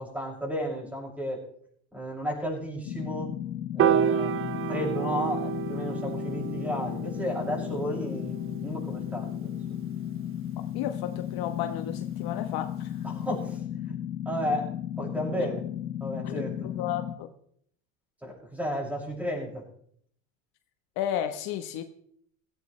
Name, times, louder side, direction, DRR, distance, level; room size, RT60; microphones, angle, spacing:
voice 1, 0.0-1.4 1.9-3.3 3.7-9.5 13.0-14.0 14.2-14.7 15.0-15.6 16.0-16.7 18.2-19.6, equal, 5° right, -3 dB, 6.3 m, -33 dB
sound 1, 2.8-17.1, left 11 dB, 75° left, 1.6 m, -35 dB
Piano, 3.8-10.1, right 10 dB, 30° right, 0.7 m, -30 dB
voice 2, 10.7-12.9 15.4-15.5 16.2-17.3 21.0-21.8, left 10 dB, 60° left, 7 dB, 1.3 m, -33 dB
16.0 x 16.0 x 3.3 m, 0.66 s
supercardioid pair, 120°, 41 cm